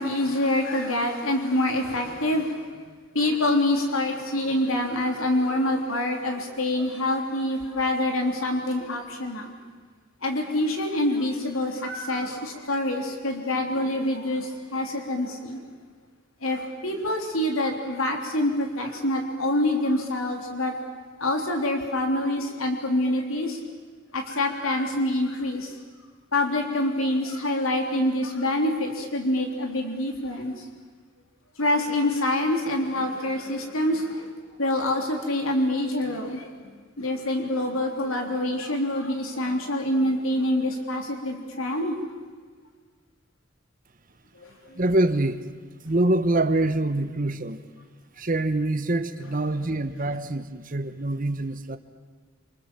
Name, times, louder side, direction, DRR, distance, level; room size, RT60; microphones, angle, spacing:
voice 1, 0.0-2.8 3.1-9.5 10.2-15.6 16.4-23.6 24.1-25.7 26.3-30.6 31.6-34.3 34.6-36.5 37.0-41.9 44.4-44.8, left 1 dB, 80° left, 3 dB, 3.3 m, -26 dB
voice 2, 44.7-45.4 45.8-47.6 48.2-51.8, right 2 dB, 40° right, 10 dB, 1.1 m, -25 dB
28.0 x 27.0 x 7.6 m, 1.5 s
head